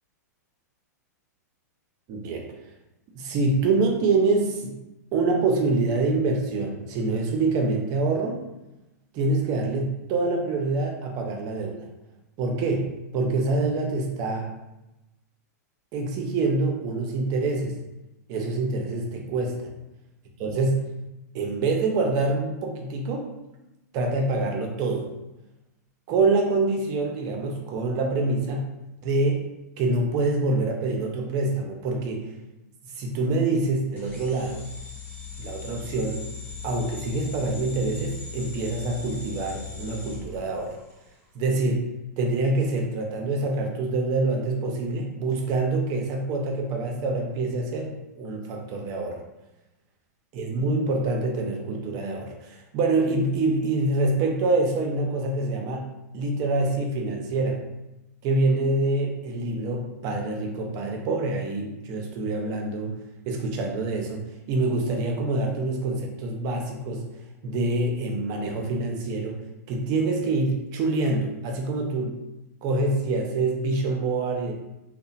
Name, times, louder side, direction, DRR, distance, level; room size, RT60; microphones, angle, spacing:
voice 1, 2.1-2.5 3.1-4.8 5.1-8.4 9.1-11.9 12.4-14.5 15.9-17.8 18.3-19.7 20.4-20.9 21.3-23.2 23.9-25.1 26.1-28.6 29.0-29.5 29.8-32.3 33.0-34.7 35.4-36.2 36.6-40.7 41.3-41.9 42.2-49.2 50.3-55.9 56.1-57.6 58.2-63.0 63.3-67.1 67.4-69.4 69.7-72.2 72.6-74.5, right 3 dB, 40° right, 2 dB, 0.6 m, -26 dB
sound 1, 34.0-41.1, left 6 dB, 15° left, 0.9 m, -39 dB
2.8 x 2.1 x 2.4 m, 0.97 s
hypercardioid pair, 120°, 9 cm